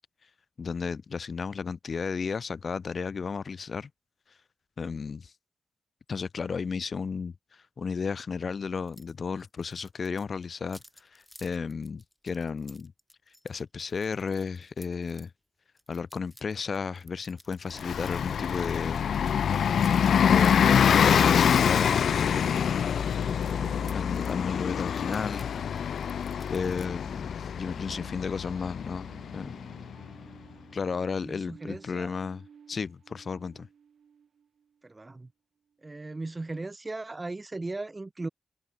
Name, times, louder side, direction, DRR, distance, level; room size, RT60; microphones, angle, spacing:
voice 1, 0.6-3.9 4.8-5.3 6.1-10.8 11.1-12.9 13.4-15.3 15.9-19.0 20.2-22.4 23.9-25.5 25.8-25.9 26.5-29.1 29.3-29.6 30.7-33.7, left 5 dB, 50° left, 0.6 m, -33 dB
sound 1, 8.9-9.1 9.4-15.3 15.8-18.2 18.5-24.4 24.8-26.9, equal, 5° left, 6.9 m, -55 dB
Bus, 17.7-30.0, left 8 dB, 85° left, 0.7 m, -25 dB
sound 2, 21.3-34.6, right 7 dB, 70° right, 7.4 m, -52 dB
voice 2, 31.2-32.1 34.8-35.3 35.8-38.3, right 2 dB, 25° right, 2.3 m, -37 dB
wide cardioid pair, 115°, 0 cm